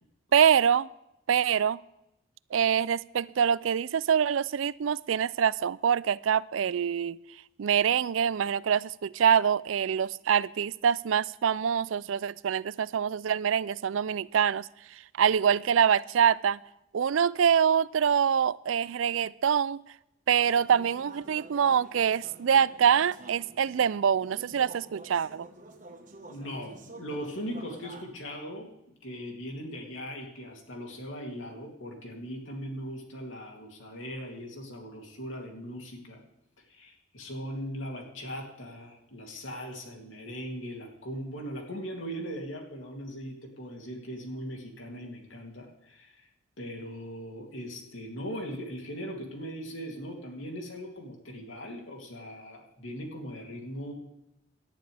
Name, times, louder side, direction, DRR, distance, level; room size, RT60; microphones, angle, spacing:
voice 1, 0.3-0.9 1.3-1.8 2.5-7.2 7.6-14.7 15.2-16.6 16.9-19.8 20.3-25.5, right 8 dB, 80° right, 0.4 m, -25 dB
sound 1, 20.4-28.0, right 2 dB, 40° right, 1.4 m, -48 dB
voice 2, 26.3-28.7 29.0-36.2 36.7-46.3 46.6-53.9, equal, 75° left, 3.0 m, -39 dB
18.0 x 11.5 x 3.5 m
head